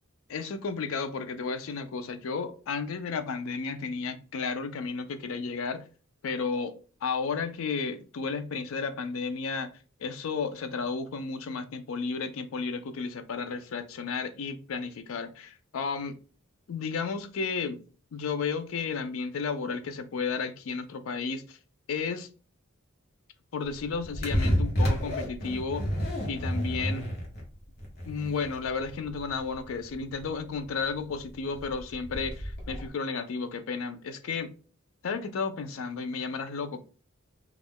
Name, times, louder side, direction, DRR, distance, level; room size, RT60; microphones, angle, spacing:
voice 1, 0.3-5.9 6.2-6.7 7.0-9.7 10.0-16.2 16.7-17.8 18.1-21.6 21.9-22.3 23.5-25.8 26.3-27.1 28.1-34.5 35.0-36.8, left 5 dB, 70° left, 0.4 m, -33 dB
sound 1, 23.8-32.9, equal, 45° left, 0.8 m, -31 dB
2.3 x 2.1 x 3.4 m
head